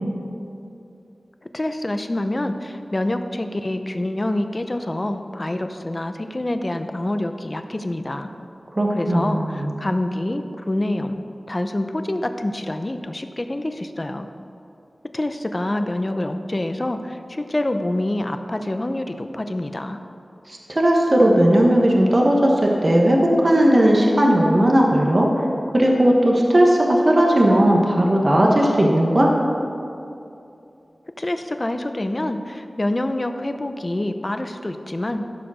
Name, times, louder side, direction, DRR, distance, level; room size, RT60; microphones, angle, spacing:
voice 1, 1.5-8.3 8.9-11.2 11.5-14.3 15.1-20.0 31.2-35.3, left 1 dB, 30° left, 7 dB, 0.7 m, -26 dB
voice 2, 8.8-9.7 20.5-25.3 25.7-29.3, right 1 dB, 40° right, -1 dB, 1.3 m, -17 dB
14.0 x 5.0 x 6.3 m, 2.6 s
wide cardioid pair, 80°, 0 cm